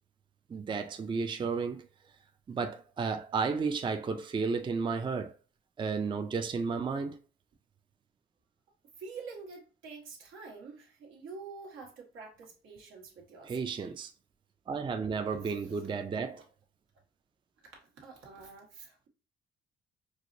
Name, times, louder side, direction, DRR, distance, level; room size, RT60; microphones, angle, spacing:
voice 1, 0.5-1.9 2.5-5.3 5.8-7.2 13.4-14.1 14.7-16.4, right 5 dB, 25° right, 0.4 m, -33 dB
voice 2, 9.0-13.5 15.4-15.9 16.3-16.4 17.8-19.1, right 4 dB, 85° right, 1.3 m, -47 dB
4.6 x 2.0 x 2.6 m
cardioid pair, 90°, 20 cm